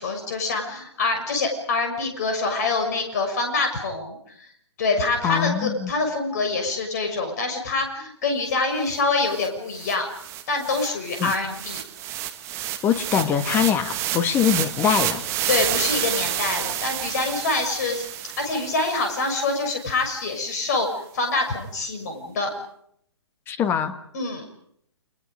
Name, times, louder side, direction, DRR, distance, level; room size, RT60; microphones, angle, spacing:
voice 1, 0.0-4.2 4.8-10.1 10.5-11.8 15.5-18.1 18.4-22.5 24.1-24.4, left 3 dB, 40° left, 5 dB, 6.5 m, -25 dB
voice 2, 5.2-5.9 11.2-11.3 12.8-15.2 23.5-24.0, left 8 dB, 15° left, 10 dB, 1.7 m, -22 dB
sound 1, 9.0-9.1 9.3-19.7, right 12 dB, 20° right, 1.7 m, -30 dB
30.0 x 26.5 x 5.2 m, 0.70 s
figure-of-eight pair, 130°, 14 cm